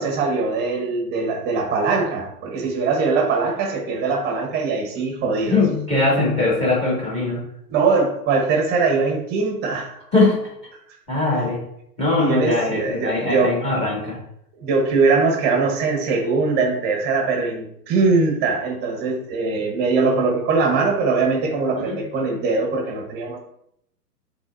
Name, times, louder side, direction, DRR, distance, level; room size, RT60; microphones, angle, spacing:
voice 1, 0.0-5.6 7.7-10.0 12.2-13.5 14.6-23.4, right 4 dB, 20° right, 2 dB, 1.2 m, -21 dB
voice 2, 5.5-7.4 10.1-10.5 11.1-11.6 12.0-14.2 21.8-22.0, left 3 dB, 15° left, -4 dB, 2.4 m, -21 dB
10.5 x 3.7 x 2.6 m, 0.75 s
hypercardioid pair, 135°, 48 cm